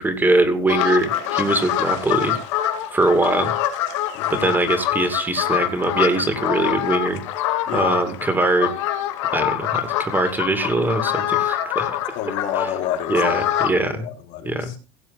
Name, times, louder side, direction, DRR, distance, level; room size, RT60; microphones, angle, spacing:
voice 1, 0.0-2.4 2.9-3.5 4.3-7.2 7.7-8.7 9.3-11.9 13.1-14.1 14.4-14.7, right 2 dB, 10° right, 8 dB, 2.4 m, -22 dB
sound 1, 0.7-13.7, left 12 dB, 85° left, 2.2 m, -25 dB
voice 2, 4.1-4.5 7.7-8.0 12.1-13.5 13.8-14.8, left 9 dB, 55° left, 3 dB, 4.0 m, -29 dB
17.0 x 7.7 x 4.1 m, 0.34 s
supercardioid pair, 130°, 15 cm